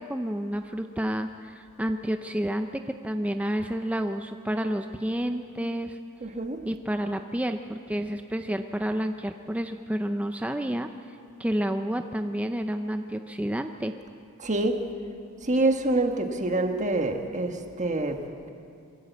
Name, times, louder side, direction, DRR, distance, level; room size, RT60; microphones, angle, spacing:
voice 1, 0.0-6.0 6.7-10.9 11.4-14.0, equal, 5° right, 6 dB, 0.5 m, -30 dB
voice 2, 6.2-6.6 14.4-14.8 15.5-17.5 17.8-18.2, right 2 dB, 35° right, 5 dB, 1.5 m, -25 dB
23.0 x 15.0 x 8.2 m, 2.5 s
head